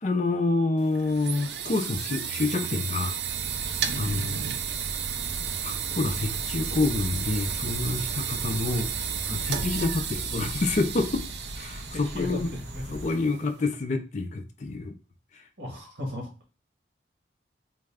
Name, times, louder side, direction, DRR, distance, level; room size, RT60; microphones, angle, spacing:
voice 1, 0.0-3.1 3.6-4.4 5.6-8.9 9.3-11.2 11.6-12.5 12.9-15.0, left 3 dB, 40° left, 6 dB, 0.4 m, -28 dB
sound 1, 0.8-13.6, right 8 dB, 65° right, 0.4 m, -33 dB
sound 2, 3.2-13.1, equal, 35° right, 1.2 m, -39 dB
voice 2, 12.5-12.8 15.6-16.5, left 1 dB, 85° right, -1 dB, 1.5 m, -36 dB
4.0 x 2.2 x 3.5 m, 0.33 s
head